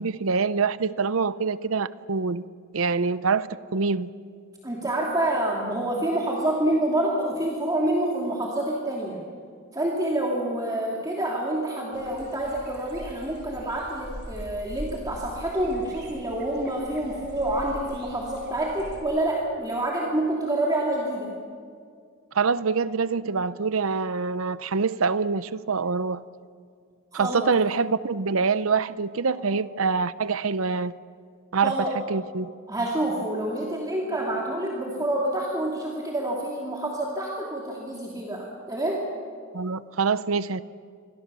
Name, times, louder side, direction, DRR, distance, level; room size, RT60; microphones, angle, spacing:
voice 1, 0.0-2.5 2.7-4.1 22.3-26.2 27.1-30.9 31.5-32.5 39.5-40.6, right 5 dB, 80° right, 0.7 m, -25 dB
voice 2, 4.6-9.2 9.7-21.3 27.1-27.5 31.6-31.9 32.7-39.0, right 1 dB, 20° right, 2.8 m, -27 dB
sound 1, 11.9-19.0, equal, 55° right, 6.1 m, -42 dB
27.5 x 23.5 x 6.9 m
head